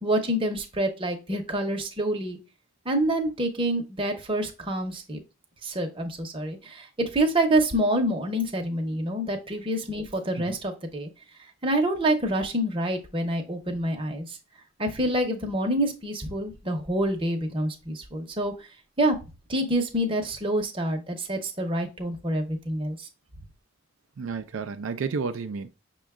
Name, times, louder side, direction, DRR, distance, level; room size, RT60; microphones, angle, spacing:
voice 1, 0.0-2.4 2.8-5.2 5.6-11.1 11.6-14.4 14.8-18.5 19.0-19.2 19.5-23.1, right 1 dB, 25° right, 0.8 m, -27 dB
voice 2, 24.2-25.7, right 5 dB, 80° right, 0.4 m, -31 dB
6.1 x 2.3 x 3.5 m
head